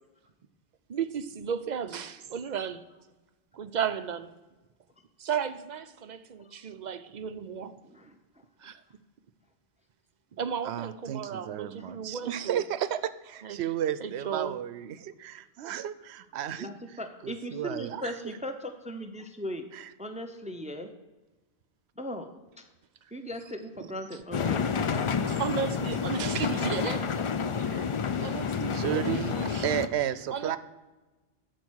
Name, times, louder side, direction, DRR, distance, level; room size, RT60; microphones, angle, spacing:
voice 1, 0.9-2.8 3.5-4.3 5.2-7.8 8.6-8.8 10.4-12.6 13.4-13.6 14.0-14.5 25.4-27.1 27.6-27.9 28.2-29.7 30.3-30.6, right 7 dB, 50° right, 11 dB, 0.6 m, -34 dB
voice 2, 7.8-8.2 15.3-15.4 16.6-19.7 20.0-20.9 22.0-22.7 23.1-24.6 24.9-25.1, equal, 10° right, 6 dB, 0.6 m, -38 dB
voice 3, 10.6-18.2 19.7-19.9 26.1-27.1 27.7-27.9 28.7-30.6, right 10 dB, 80° right, 15 dB, 0.8 m, -34 dB
sound 1, 24.3-29.9, left 6 dB, 55° left, 0.3 m, -29 dB
11.5 x 4.5 x 6.3 m, 1.1 s
omnidirectional pair, 1.1 m